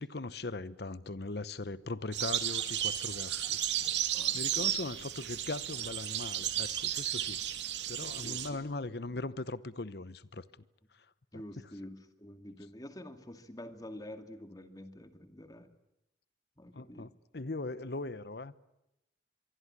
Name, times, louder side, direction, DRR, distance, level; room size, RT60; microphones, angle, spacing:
voice 1, 0.0-3.6 4.3-7.4 7.9-10.4 11.3-11.4 16.7-18.5, left 2 dB, 60° left, 0.9 m, -39 dB
sound 1, 2.1-8.5, right 11 dB, 80° right, 2.5 m, -33 dB
voice 2, 4.1-4.7 8.2-8.6 11.3-15.7 16.6-17.1, left 1 dB, 20° left, 2.3 m, -48 dB
25.0 x 23.5 x 9.8 m
head